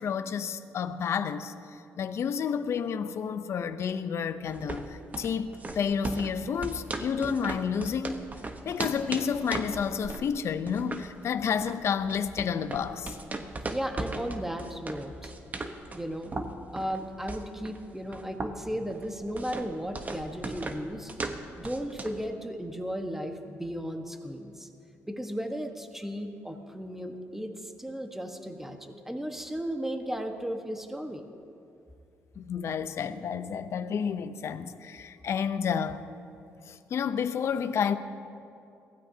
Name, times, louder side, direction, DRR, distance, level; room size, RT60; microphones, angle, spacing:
voice 1, 0.0-8.2 8.6-13.2 32.4-36.0 36.7-38.0, left 7 dB, 60° left, 0.7 m, -30 dB
sound 1, 4.5-22.3, right 2 dB, 30° right, 1.1 m, -38 dB
voice 2, 13.7-15.3 15.9-16.3 16.7-21.1 21.5-24.7 25.0-31.2, equal, 5° right, 1.3 m, -35 dB
22.0 x 16.0 x 2.8 m
cardioid pair, 85°, 5 cm